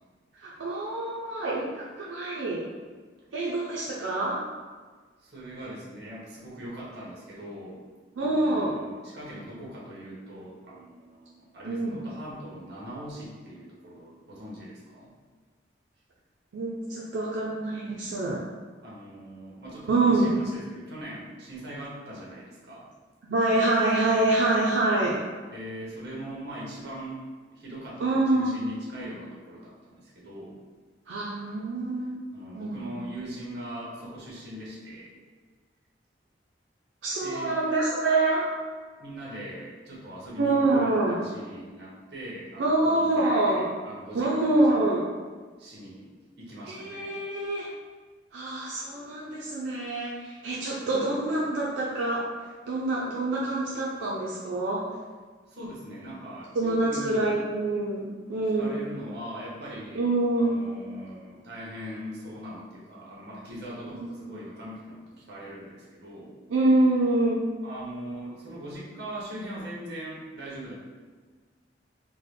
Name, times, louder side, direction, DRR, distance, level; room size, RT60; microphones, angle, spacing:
voice 1, 0.4-2.6 3.3-4.4 8.2-8.8 11.7-12.0 16.5-18.5 19.9-20.3 23.2-25.2 28.0-28.5 31.1-32.9 37.0-38.5 40.4-41.2 42.6-43.7 44.1-45.0 46.7-47.7 48.3-52.3 52.7-54.8 56.5-58.8 59.9-60.7 64.0-64.2 66.5-67.5, right 2 dB, 85° right, -5 dB, 0.4 m, -26 dB
voice 2, 5.2-7.8 8.2-15.1 18.8-22.9 23.3-23.7 24.0-24.2 25.5-27.2 27.5-30.6 32.3-35.1 37.2-37.5 39.0-45.0 45.6-46.1 46.4-47.2 55.5-57.4 58.6-60.0 60.4-66.4 67.6-70.7, equal, 60° right, -5 dB, 1.0 m, -40 dB
3.7 x 2.1 x 3.1 m, 1.4 s
head